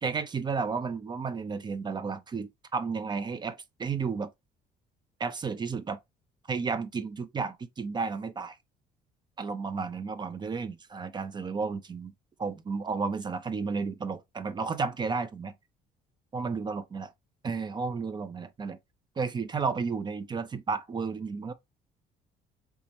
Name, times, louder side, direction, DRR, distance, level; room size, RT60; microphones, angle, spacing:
voice 1, 0.0-4.3 5.2-6.0 6.5-8.6 9.4-12.1 12.4-15.5 16.3-17.1 17.4-18.8 19.2-21.5, right 5 dB, 25° right, 0.4 m, -32 dB
3.4 x 3.0 x 2.8 m
cardioid pair, 110°, 17 cm